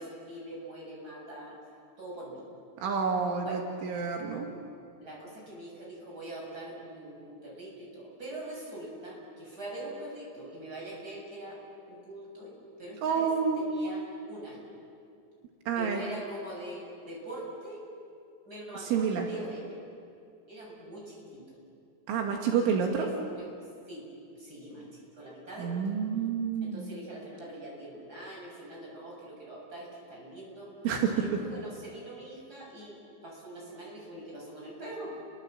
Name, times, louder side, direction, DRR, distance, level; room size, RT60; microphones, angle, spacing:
voice 1, 0.0-1.6 2.0-2.4 3.4-3.6 5.0-11.6 11.9-13.3 13.6-14.7 15.7-17.8 18.4-19.8 20.5-21.6 22.2-22.6 23.0-23.5 23.9-24.1 24.3-24.9 25.1-25.8 26.6-30.7 31.2-33.0 33.2-35.2, right 1 dB, 20° right, -3 dB, 7.8 m, -43 dB
voice 2, 2.8-4.5 13.0-13.7 15.7-16.0 18.9-19.3 22.1-23.1 25.6-26.9 30.8-31.1, right 6 dB, 80° right, 1 dB, 4.4 m, -29 dB
30.0 x 23.5 x 7.5 m, 2.3 s
omnidirectional pair, 5.5 m